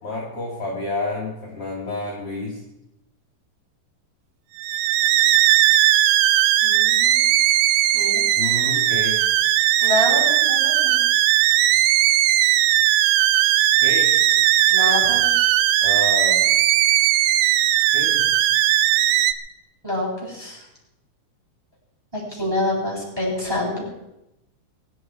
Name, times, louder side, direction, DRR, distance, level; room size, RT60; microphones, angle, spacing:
voice 1, 0.0-2.6 8.4-9.2 11.6-11.7 13.8-14.1 15.8-16.5 17.9-18.3, left 2 dB, 35° left, -2 dB, 3.8 m, -29 dB
sound 1, 4.6-19.3, right 13 dB, 80° right, 2.6 m, -18 dB
voice 2, 6.6-7.3 7.9-8.2 9.8-11.1 14.7-15.3 19.8-20.6 22.1-23.8, left 1 dB, 5° right, -3 dB, 6.9 m, -26 dB
24.0 x 12.0 x 4.8 m, 0.90 s
omnidirectional pair, 5.3 m